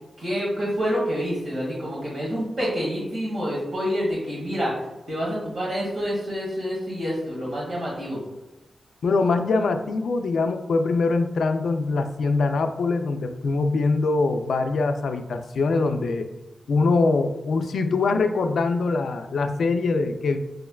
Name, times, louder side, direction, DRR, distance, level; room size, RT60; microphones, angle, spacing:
voice 1, 0.2-4.7 5.1-8.2, equal, 55° right, -5 dB, 1.5 m, -27 dB
voice 2, 9.0-16.3 16.7-20.4, left 3 dB, 85° left, 7 dB, 0.3 m, -23 dB
6.2 x 2.1 x 2.2 m, 1.0 s
wide cardioid pair, 140°, 0 cm